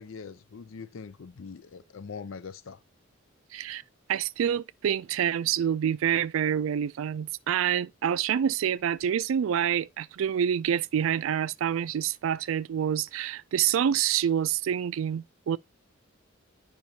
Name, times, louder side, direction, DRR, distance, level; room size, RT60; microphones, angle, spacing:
voice 1, 0.0-2.8, left 5 dB, 65° left, 0.5 m, -42 dB
voice 2, 3.5-3.8 4.1-15.6, right 9 dB, 70° right, 0.3 m, -27 dB
10.5 x 5.2 x 2.7 m
head